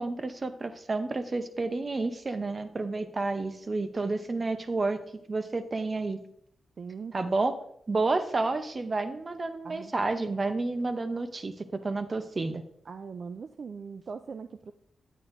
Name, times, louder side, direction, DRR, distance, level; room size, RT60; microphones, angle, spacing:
voice 1, 0.0-5.0 5.3-6.2 7.1-7.5 7.9-12.6, right 3 dB, 35° right, 9 dB, 0.7 m, -30 dB
voice 2, 6.8-7.3 9.6-9.9 12.9-14.7, right 5 dB, 55° right, 9 dB, 0.3 m, -41 dB
9.1 x 8.9 x 2.6 m, 0.68 s
wide cardioid pair, 110°, 0 cm